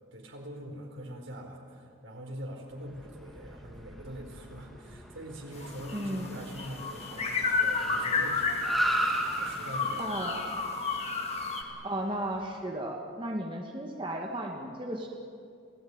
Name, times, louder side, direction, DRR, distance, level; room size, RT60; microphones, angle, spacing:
voice 1, 0.1-10.4, equal, 85° right, 2 dB, 4.4 m, -43 dB
Car, 2.8-12.4, right 1 dB, ahead, 2.6 m, -36 dB
sound 1, 5.5-11.6, left 4 dB, 30° left, 2.1 m, -32 dB
voice 2, 5.9-6.3 10.0-10.4 11.8-15.1, right 1 dB, 25° right, 1 dB, 1.8 m, -34 dB
28.0 x 17.0 x 9.6 m, 2.4 s
head